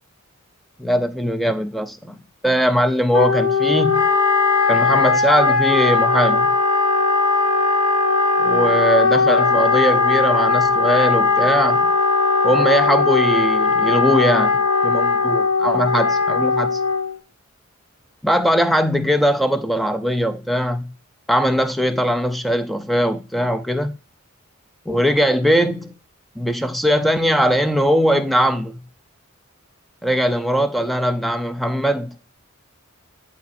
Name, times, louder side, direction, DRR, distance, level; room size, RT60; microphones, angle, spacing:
voice 1, 0.8-4.1 4.7-6.6 8.4-11.9 12.4-16.8 18.2-20.9 21.3-23.9 24.9-26.0 26.4-28.8 30.0-32.2, equal, ahead, 0.5 m, -20 dB
Wind instrument woodwind instrument, 3.1-17.2, left 3 dB, 75° left, 1.0 m, -18 dB
11.0 x 4.1 x 2.6 m
head